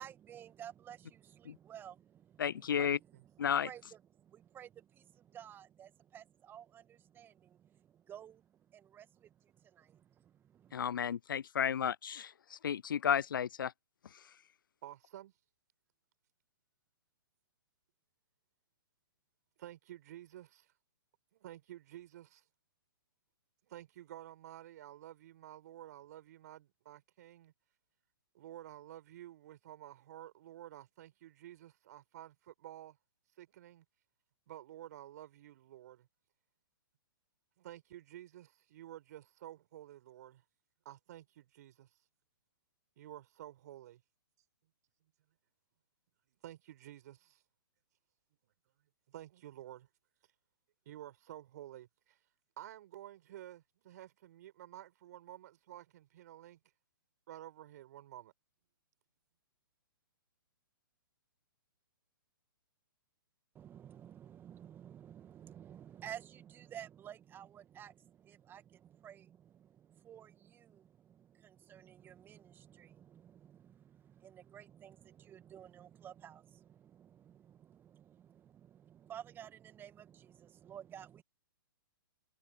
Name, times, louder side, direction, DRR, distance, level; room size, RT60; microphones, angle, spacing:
voice 1, 0.0-11.0 63.5-81.2, right 10 dB, 15° right, 2.0 m, -53 dB
voice 2, 2.4-3.0 3.4-3.7 10.7-13.7, left 8 dB, 65° left, 0.4 m, -33 dB
voice 3, 14.8-15.3 19.6-20.7 21.3-22.4 23.7-27.5 28.3-33.0 33.4-33.8 34.5-36.1 37.6-40.4 40.8-41.9 43.0-44.0 46.4-47.4 49.1-49.9 50.8-52.2 52.6-56.6 57.3-58.3, right 13 dB, 50° right, 5.1 m, -51 dB
figure-of-eight pair, 120°, 12 cm